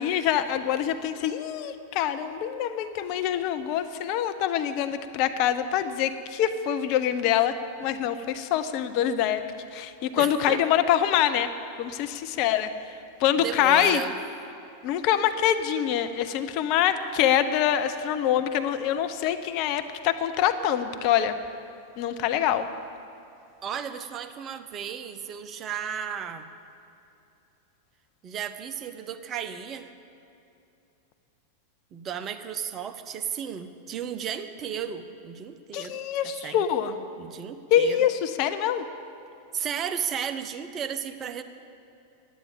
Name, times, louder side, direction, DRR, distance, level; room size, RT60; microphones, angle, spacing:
voice 1, 0.0-9.4 9.7-11.5 11.8-12.7 13.2-14.0 14.8-21.4 22.0-22.7 35.7-37.0 37.7-38.8, left 10 dB, 45° left, 10 dB, 0.6 m, -25 dB
voice 2, 10.2-10.6 13.4-14.1 23.6-26.5 28.2-29.9 31.9-36.0 36.4-36.6 37.2-38.0 39.5-41.4, right 8 dB, 30° right, 8 dB, 0.7 m, -34 dB
10.5 x 9.0 x 8.6 m, 2.8 s
figure-of-eight pair, 90°, 0 cm